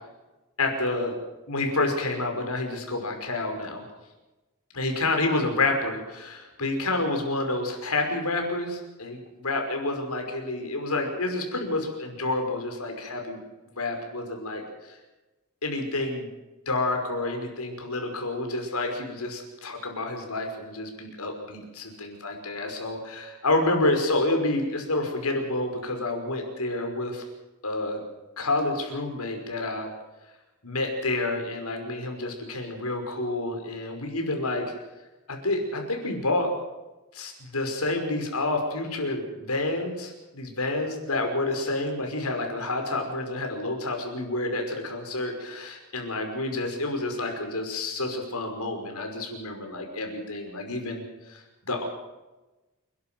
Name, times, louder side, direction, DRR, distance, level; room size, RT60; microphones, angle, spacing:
voice 1, 0.6-1.1 1.5-3.8 4.7-13.4 13.8-15.0 15.6-16.3 16.7-27.2 27.6-28.0 28.4-29.9 30.6-34.7 35.3-36.5 37.1-51.4 51.7-51.8, left 2 dB, 85° left, 3 dB, 5.7 m, -29 dB
29.5 x 12.0 x 7.8 m, 1.1 s
head